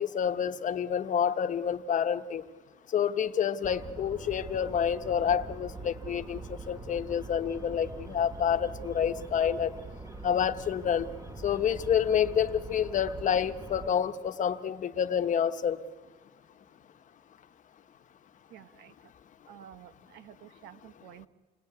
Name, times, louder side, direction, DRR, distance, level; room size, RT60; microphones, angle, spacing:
voice 1, 0.0-2.4 2.9-6.4 6.7-9.7 10.2-11.1 11.4-15.8, left 8 dB, 50° left, 10 dB, 1.1 m, -28 dB
sound 1, 3.6-13.9, right 3 dB, 20° right, 2.4 m, -43 dB
voice 2, 18.5-19.1 19.5-21.3, right 10 dB, 85° right, 12 dB, 1.4 m, -51 dB
28.5 x 20.5 x 9.7 m, 1.5 s
cardioid pair, 110°, 17 cm